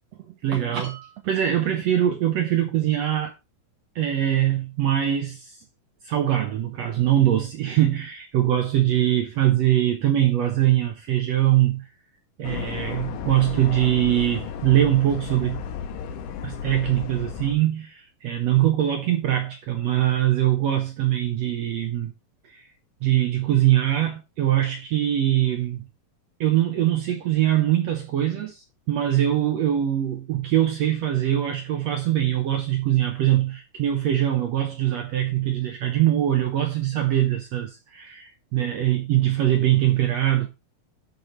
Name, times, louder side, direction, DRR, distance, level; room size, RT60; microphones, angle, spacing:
voice 1, 0.4-3.3 3.9-5.6 6.0-11.9 12.4-15.7 16.4-22.1 22.4-22.7 23.0-25.9 26.4-40.5, right 12 dB, 85° right, 1.4 m, -22 dB
sound 1, 12.4-17.6, left 8 dB, 75° left, 2.2 m, -34 dB
13.0 x 5.0 x 3.0 m
omnidirectional pair, 4.2 m